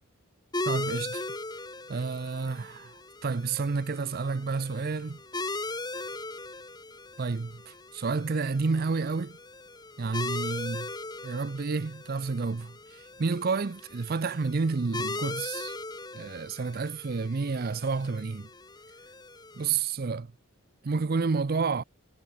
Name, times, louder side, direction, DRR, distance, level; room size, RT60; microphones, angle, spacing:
sound 1, 0.5-19.7, left 2 dB, 20° left, 2.5 m, -39 dB
voice 1, 0.6-1.2 1.9-2.9 3.2-5.2 7.2-9.3 10.0-10.9 11.2-15.8 16.1-18.5 19.6-20.3 20.8-21.8, right 4 dB, 45° right, 0.5 m, -30 dB
head